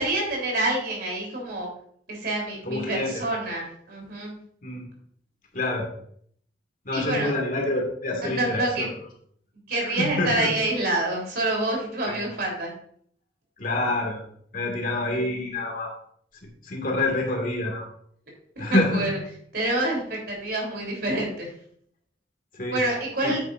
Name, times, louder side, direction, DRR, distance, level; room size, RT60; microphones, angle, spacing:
voice 1, 0.0-1.7 2.1-4.4 6.9-7.3 8.2-8.9 9.7-12.7 18.6-19.2 19.5-21.5 22.7-23.4, right 1 dB, 60° right, -1 dB, 3.6 m, -27 dB
voice 2, 2.6-3.2 4.6-4.8 5.5-5.9 6.9-8.9 9.8-10.5 12.1-12.2 13.6-14.2 14.5-15.9 16.6-17.9 18.6-19.1 22.5-22.8 23.2-23.4, left 2 dB, 50° left, 0 dB, 2.1 m, -27 dB
9.5 x 9.1 x 2.6 m, 0.64 s
head